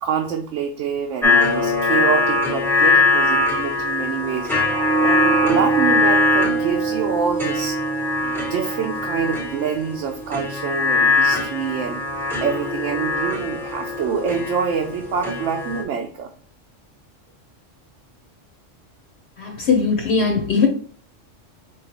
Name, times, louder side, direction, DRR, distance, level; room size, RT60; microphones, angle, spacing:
voice 1, 0.0-4.5 5.0-7.8 8.2-12.0 12.4-16.3, right 6 dB, 75° right, 2 dB, 0.9 m, -26 dB
sound 1, 1.2-15.8, left 2 dB, ahead, 0.7 m, -21 dB
voice 2, 19.4-20.7, left 5 dB, 65° left, 1 dB, 1.0 m, -19 dB
4.6 x 3.1 x 2.8 m, 0.43 s
omnidirectional pair, 1.3 m